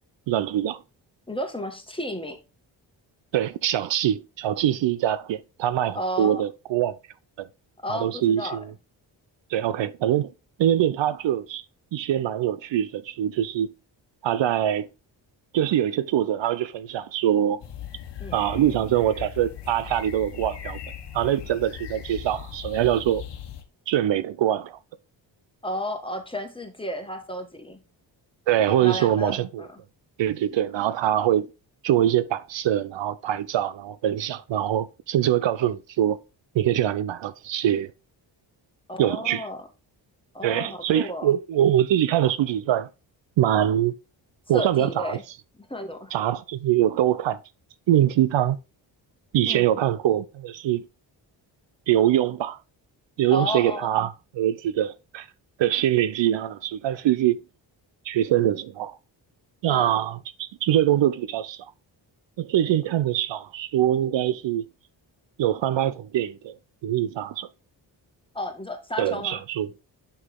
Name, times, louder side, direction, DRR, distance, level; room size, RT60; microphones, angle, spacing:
voice 1, 0.3-0.8 3.3-6.9 7.9-8.7 9.5-10.3 10.6-11.6 11.9-13.7 14.2-14.9 15.5-17.6 18.3-20.8 21.1-23.2 23.9-24.8 28.5-29.6 30.2-31.5 31.8-36.2 36.5-37.9 39.0-39.5 40.4-42.9 43.4-43.9 44.5-45.2 46.1-47.4 47.9-48.6 49.3-50.8 51.9-52.6 53.2-55.3 55.6-57.4 58.0-59.0 59.6-61.7 62.4-64.6 65.4-66.5 66.8-67.5 69.0-69.7, right 11 dB, 70° right, 0.6 m, -23 dB
voice 2, 1.3-2.4 6.0-6.4 7.8-8.6 18.2-18.4 25.6-27.8 28.7-29.8 38.9-39.7 40.3-41.3 44.5-45.2 45.6-46.1 49.5-49.8 53.3-53.9 59.7-60.0 68.3-69.4, equal, 10° left, 1.9 m, -32 dB
sound 1, 17.6-23.6, left 9 dB, 60° left, 1.3 m, -39 dB
6.6 x 5.7 x 3.7 m
cardioid pair, 65°, 46 cm